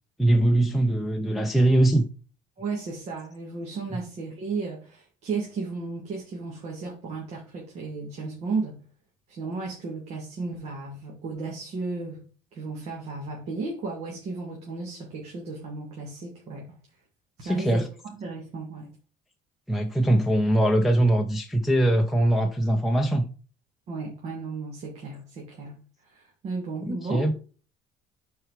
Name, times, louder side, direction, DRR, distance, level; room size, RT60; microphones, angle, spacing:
voice 1, 0.2-2.0 3.9-4.0 17.4-17.9 19.7-23.3 26.8-27.3, right 1 dB, ahead, 0.6 m, -22 dB
voice 2, 2.6-8.8 9.3-12.2 12.5-16.7 17.4-18.9 23.9-27.3, right 4 dB, 45° right, 2.2 m, -34 dB
7.8 x 4.7 x 4.7 m
cardioid pair, 150°, 14 cm